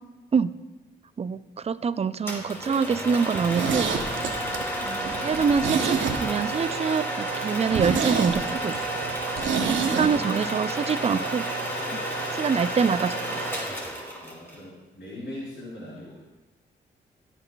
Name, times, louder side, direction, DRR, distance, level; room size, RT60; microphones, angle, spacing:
voice 1, 1.2-3.9 4.8-8.8 10.0-11.4 11.9-12.0 12.3-13.4, right 6 dB, 35° right, 14 dB, 0.4 m, -25 dB
sound 1, 2.3-14.6, right 1 dB, 10° left, 2.5 m, -31 dB
Zipper (clothing), 3.3-6.6 6.9-7.0 7.3-7.4 7.7-10.1 10.4-10.5, right 6 dB, 85° right, 0.8 m, -27 dB
voice 2, 9.5-10.3 14.2-16.2, left 1 dB, 60° left, -8 dB, 3.0 m, -40 dB
15.0 x 5.9 x 2.3 m, 1.1 s
cardioid pair, 55°, 19 cm